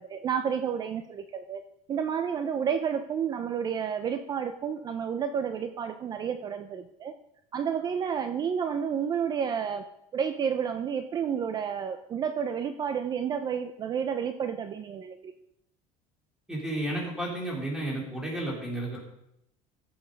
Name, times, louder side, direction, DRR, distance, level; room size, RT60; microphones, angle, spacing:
voice 1, 0.0-1.6 1.9-7.1 7.5-9.8 10.1-15.4, right 7 dB, 25° right, 9 dB, 0.5 m, -30 dB
voice 2, 16.5-19.0, right 1 dB, 5° right, -2 dB, 3.4 m, -32 dB
15.0 x 7.1 x 5.3 m, 0.79 s
cardioid pair, 165°, 16 cm